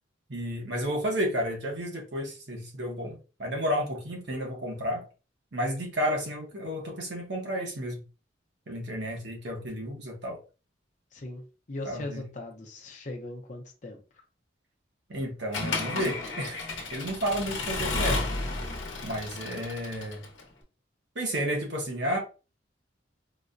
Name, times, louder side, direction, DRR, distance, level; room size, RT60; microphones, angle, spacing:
voice 1, 0.3-5.1 5.5-8.0 8.7-10.4 11.8-12.2 15.1-16.6 16.9-18.3 19.0-20.2 21.1-22.2, equal, 60° right, 1.0 m, -32 dB
voice 2, 11.1-14.2, left 2 dB, 40° left, 0.7 m, -40 dB
Accelerating revving vroom / Mechanisms, 15.5-20.4, left 3 dB, 80° left, 0.9 m, -32 dB
4.1 x 2.2 x 2.5 m
head